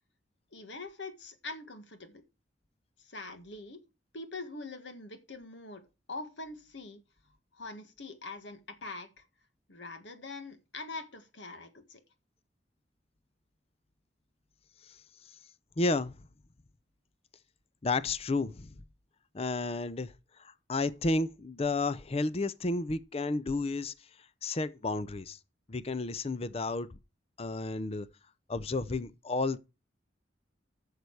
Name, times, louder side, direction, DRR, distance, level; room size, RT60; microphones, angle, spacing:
voice 1, 0.5-2.2 3.0-3.8 4.1-5.8 6.1-7.0 7.5-9.3 9.7-12.0, left 3 dB, 75° left, 1.7 m, -43 dB
voice 2, 15.8-16.2 17.8-18.7 19.3-20.1 20.7-23.9 24.4-25.4 25.7-27.0 27.4-28.1 28.5-29.6, left 3 dB, 35° left, 0.6 m, -31 dB
11.5 x 6.7 x 4.7 m
head